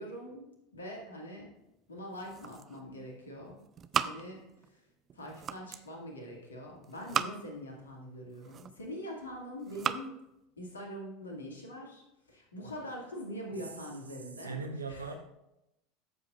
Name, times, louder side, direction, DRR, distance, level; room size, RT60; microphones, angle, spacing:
voice 1, 0.0-1.5 1.9-3.6 4.0-4.4 4.7-4.8 5.1-10.2 10.6-15.2, equal, 75° left, 0 dB, 2.2 m, -43 dB
sound 1, 2.0-3.0 3.3-4.7 5.1-5.9 6.8-7.7 8.2-9.0 9.5-10.1, right 8 dB, 30° right, 0.5 m, -37 dB
voice 2, 14.4-15.2, right 4 dB, 80° right, 6 dB, 0.9 m, -38 dB
14.0 x 7.5 x 2.5 m, 0.87 s
figure-of-eight pair, 75°, 0 cm